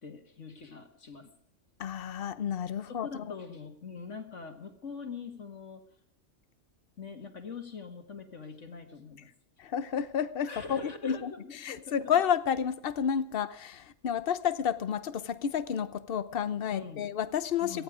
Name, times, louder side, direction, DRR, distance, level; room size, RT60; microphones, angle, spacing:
voice 1, 0.0-1.3 2.9-5.8 7.0-9.3 10.4-11.9 16.7-17.0 17.6-17.8, left 5 dB, 70° left, 6 dB, 2.3 m, -43 dB
voice 2, 1.8-3.3 9.6-11.3 11.6-17.8, left 8 dB, 55° left, 14 dB, 1.0 m, -31 dB
18.0 x 14.5 x 5.0 m, 0.69 s
omnidirectional pair, 1.3 m